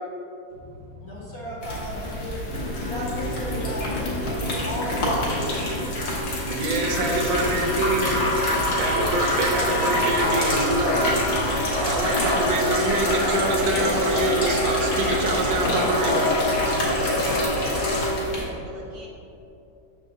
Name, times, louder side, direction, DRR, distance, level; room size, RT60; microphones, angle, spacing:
voice 1, 0.5-8.8 9.1-9.2, left 1 dB, 45° left, -6 dB, 1.0 m, -34 dB
sound 1, 1.6-18.4, equal, 70° left, 1.9 m, -32 dB
sound 2, 2.5-18.1, left 1 dB, 85° left, 1.9 m, -25 dB
voice 2, 6.5-8.2 8.8-11.1 11.8-16.3, right 3 dB, 85° right, 1 dB, 1.5 m, -26 dB
voice 3, 17.0-18.3 18.6-19.1, right 1 dB, 55° right, -3 dB, 1.1 m, -40 dB
6.4 x 4.4 x 3.7 m, 2.8 s
omnidirectional pair, 2.0 m